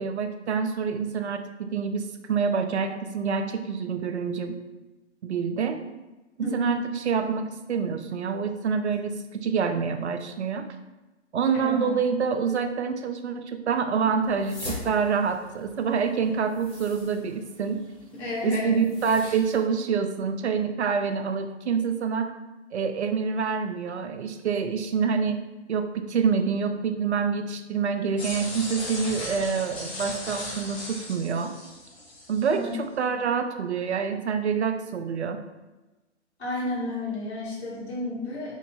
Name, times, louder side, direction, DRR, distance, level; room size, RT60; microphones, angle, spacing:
voice 1, 0.0-4.6 5.2-5.8 6.4-10.7 11.3-17.8 18.4-22.3 22.7-31.5 32.3-35.4, right 6 dB, 70° right, 7 dB, 0.5 m, -27 dB
voice 2, 11.5-12.0 18.1-18.8 19.2-19.4 32.5-32.7 33.1-33.2 36.4-38.6, left 2 dB, 65° left, -7 dB, 1.5 m, -32 dB
sound 1, 14.2-19.6, left 1 dB, 10° left, 0.3 m, -43 dB
sound 2, 28.2-32.6, left 2 dB, 30° left, 0.8 m, -37 dB
3.0 x 2.3 x 3.6 m, 1.1 s
figure-of-eight pair, 120°, 35 cm